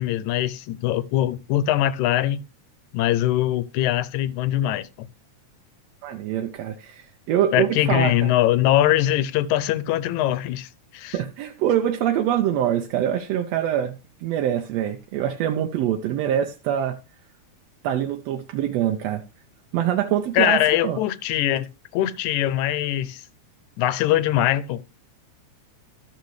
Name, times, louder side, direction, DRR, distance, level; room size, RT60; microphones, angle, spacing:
voice 1, 0.0-2.4 2.9-5.1 7.5-11.2 20.3-21.7 21.9-23.2 23.8-24.8, left 13 dB, 80° left, 2.0 m, -22 dB
voice 2, 6.0-8.3 11.1-13.9 14.2-17.0 17.8-19.2 19.7-21.0, right 10 dB, 75° right, 1.6 m, -24 dB
13.0 x 6.5 x 3.2 m
omnidirectional pair, 3.4 m